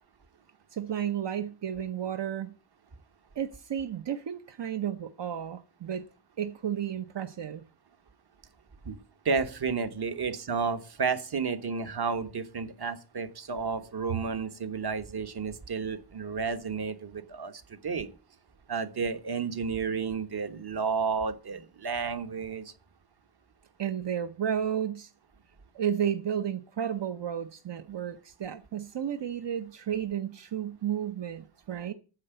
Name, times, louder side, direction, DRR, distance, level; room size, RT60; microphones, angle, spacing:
voice 1, 0.7-2.6 3.4-6.0 6.4-7.6 23.8-25.1 25.7-31.9, right 9 dB, 85° right, 0.8 m, -32 dB
voice 2, 9.2-18.1 18.7-22.7, right 5 dB, 65° right, 1.3 m, -32 dB
9.7 x 7.7 x 8.0 m
wide cardioid pair, 95°, 41 cm